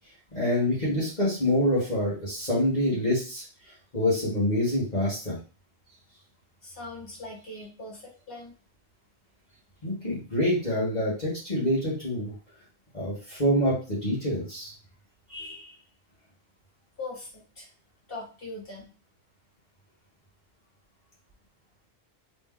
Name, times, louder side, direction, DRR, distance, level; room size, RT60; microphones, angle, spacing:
voice 1, 0.3-3.4 3.9-5.4 9.8-12.3 12.9-14.7 15.3-15.7, left 1 dB, 40° left, -7 dB, 1.5 m, -26 dB
voice 2, 6.6-8.0 8.3-8.5 17.0-17.7 18.1-18.9, left 2 dB, 55° left, -3 dB, 1.8 m, -40 dB
3.1 x 3.1 x 3.7 m, 0.35 s
omnidirectional pair, 1.1 m